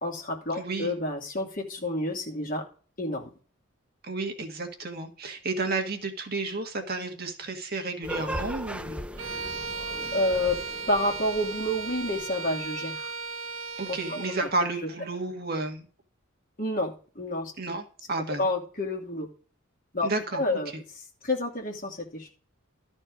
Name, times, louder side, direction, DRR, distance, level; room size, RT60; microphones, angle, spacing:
voice 1, 0.0-2.6 3.0-3.3 10.1-10.6 10.9-13.1 13.9-14.3 16.6-17.5 18.4-19.3 19.9-20.1 20.3-22.3, left 1 dB, 40° left, 2 dB, 2.5 m, -29 dB
voice 2, 0.6-0.9 4.0-9.0 13.8-15.8 17.6-18.4 20.0-20.6, right 3 dB, 45° right, 5 dB, 1.6 m, -32 dB
sound 1, 8.0-12.7, right 1 dB, 5° right, 0.5 m, -38 dB
Bowed string instrument, 9.2-14.6, right 4 dB, 70° right, 0.7 m, -36 dB
13.0 x 4.4 x 6.3 m, 0.41 s
head